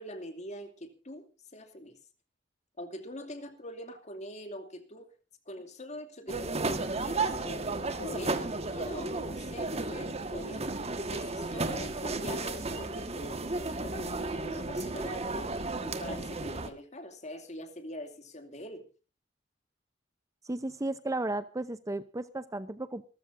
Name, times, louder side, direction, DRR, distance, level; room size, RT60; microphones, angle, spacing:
voice 1, 0.0-2.0 2.8-5.1 5.5-7.7 8.0-10.7 11.1-18.8, left 1 dB, 40° left, 7 dB, 2.5 m, -43 dB
sound 1, 6.3-16.7, right 3 dB, 35° right, 1.6 m, -33 dB
voice 2, 20.4-23.1, right 2 dB, 15° right, 13 dB, 0.7 m, -34 dB
26.5 x 14.0 x 2.6 m, 0.34 s
head